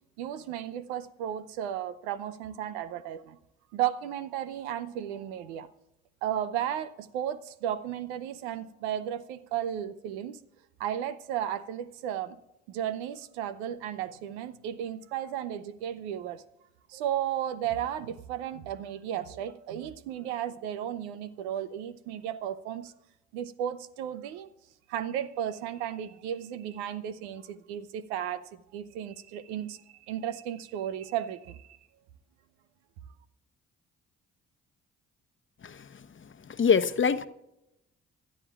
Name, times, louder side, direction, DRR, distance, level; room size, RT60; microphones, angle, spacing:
voice 1, 0.2-3.4 3.7-5.7 6.2-10.4 10.8-12.4 12.7-16.4 16.9-22.9 23.3-24.5 24.9-28.4 28.7-29.8 30.1-31.8, right 10 dB, 85° right, 0.7 m, -34 dB
voice 2, 36.5-37.3, left 6 dB, 35° left, 0.9 m, -24 dB
25.0 x 11.0 x 2.4 m
hypercardioid pair, 45°, 33 cm